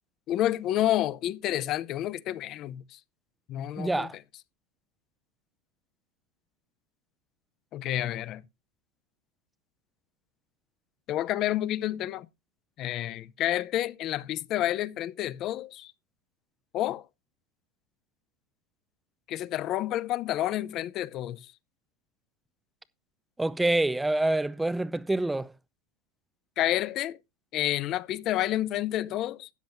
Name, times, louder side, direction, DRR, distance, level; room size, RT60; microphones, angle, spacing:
voice 1, 0.3-3.0 3.5-4.1 7.7-8.4 11.1-12.3 12.8-15.9 16.7-17.0 19.3-21.5 26.6-27.2 27.5-29.5, left 13 dB, 35° left, 0.6 m, -29 dB
voice 2, 3.8-4.2 23.4-25.5, right 2 dB, 5° right, 0.6 m, -26 dB
13.0 x 10.0 x 2.6 m
supercardioid pair, 160°, 0 cm